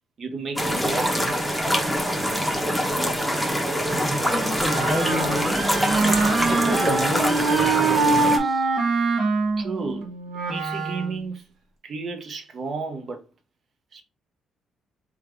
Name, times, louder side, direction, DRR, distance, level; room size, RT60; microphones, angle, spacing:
voice 1, 0.2-1.3 9.6-10.2 10.5-11.5 11.8-13.2 13.9-14.0, right 4 dB, 55° right, 0.8 m, -32 dB
sound 1, 0.6-8.4, equal, ahead, 0.8 m, -24 dB
Screaming, 3.9-8.4, right 1 dB, 30° right, 1.6 m, -34 dB
voice 2, 4.0-5.6 6.5-8.7, left 1 dB, 15° left, 0.5 m, -31 dB
Wind instrument woodwind instrument, 4.6-11.2, right 4 dB, 85° right, 1.1 m, -24 dB
3.4 x 2.3 x 3.2 m
cardioid pair, 90°, 0 cm